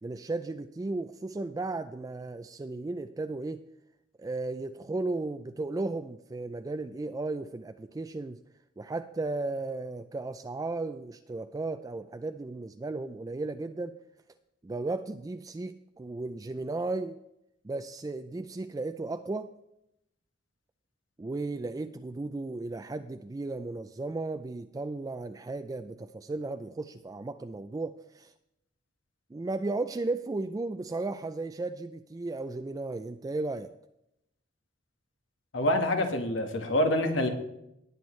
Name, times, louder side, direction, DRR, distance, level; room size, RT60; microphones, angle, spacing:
voice 1, 0.0-3.6 4.2-8.4 8.8-14.0 14.6-17.2 17.6-19.5 21.2-28.3 29.3-33.7, right 2 dB, 20° right, 9 dB, 0.3 m, -35 dB
voice 2, 35.5-37.3, left 1 dB, 85° left, 5 dB, 1.5 m, -26 dB
19.0 x 8.0 x 3.2 m, 0.83 s
head